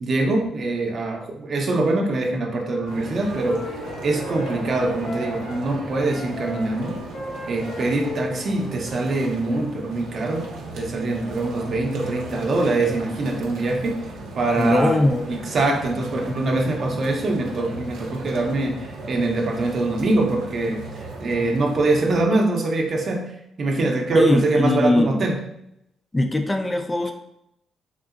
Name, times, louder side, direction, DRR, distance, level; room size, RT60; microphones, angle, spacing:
voice 1, 0.0-7.0 7.5-10.5 10.7-14.1 14.3-15.0 15.3-25.4, right 2 dB, 50° right, 2 dB, 0.6 m, -23 dB
Wind instrument woodwind instrument, 2.7-5.6 5.9-9.3, left 2 dB, 80° left, 0.7 m, -37 dB
sound 1, 2.9-22.2, right 2 dB, 90° right, 0.6 m, -36 dB
voice 2, 14.6-15.3 24.1-25.2 26.1-27.1, left 2 dB, 15° left, 5 dB, 0.3 m, -20 dB
3.6 x 2.7 x 2.5 m, 0.79 s
cardioid pair, 90°, 0 cm